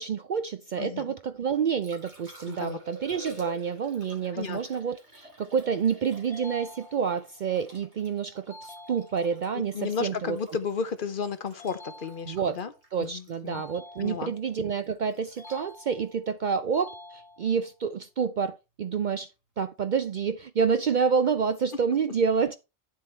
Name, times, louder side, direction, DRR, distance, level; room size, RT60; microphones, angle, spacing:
voice 1, 0.0-10.4 12.3-12.6 12.9-19.3 19.6-22.6, right 6 dB, 55° right, 0.5 m, -28 dB
voice 2, 0.8-1.1 2.5-2.8 4.3-4.6 9.7-12.7 13.0-13.6 14.0-14.3, left 5 dB, 50° left, 0.9 m, -33 dB
Liquid, 1.4-17.5 20.3-20.4, right 3 dB, 75° right, 3.6 m, -49 dB
sound 1, 6.3-7.3 8.5-9.5 11.6-12.6 13.5-14.6 15.4-16.3 16.7-17.7, left 1 dB, 25° left, 1.8 m, -48 dB
9.6 x 7.6 x 3.2 m
omnidirectional pair, 1.2 m